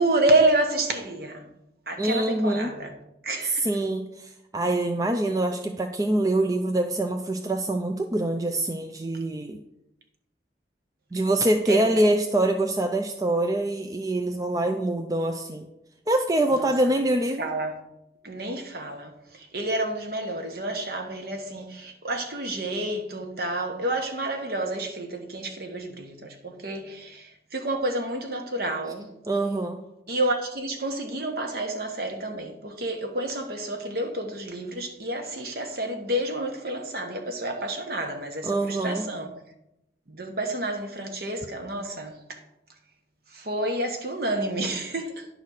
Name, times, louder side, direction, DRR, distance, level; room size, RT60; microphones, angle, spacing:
voice 1, 0.0-1.5 1.9-2.9 3.2-3.7 11.7-11.9 16.5-16.7 17.4-17.8 18.2-29.1 30.1-39.3 40.1-42.4 43.3-45.3, right 1 dB, 55° right, 1.2 m, -29 dB
voice 2, 2.0-2.7 3.4-9.6 11.1-15.7 16.1-17.4 29.3-29.8 38.4-39.0, right 1 dB, 20° right, 0.4 m, -25 dB
10.5 x 4.0 x 6.4 m
head